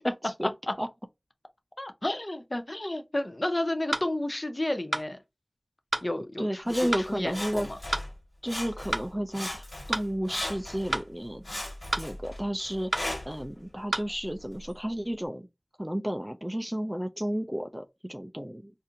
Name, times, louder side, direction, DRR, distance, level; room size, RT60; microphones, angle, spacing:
voice 1, 1.8-5.2 6.0-7.8, left 1 dB, 40° left, 0.6 m, -32 dB
sound 1, 3.9-4.1 4.9-5.1 5.9-6.1 6.9-7.1 7.9-8.1 8.9-9.1 9.9-10.1 10.9-11.1 11.9-12.1 12.9-13.1 13.9-14.1, right 2 dB, 75° right, 0.6 m, -30 dB
voice 2, 6.4-7.7 8.4-11.4 12.0-15.5 15.8-18.7, equal, 10° right, 0.4 m, -32 dB
Sawing, 6.7-8.1 8.4-9.1 9.3-11.0 11.4-13.4 14.1-14.2, left 1 dB, 55° left, 1.7 m, -38 dB
4.1 x 2.5 x 2.6 m
wide cardioid pair, 50°, 0 cm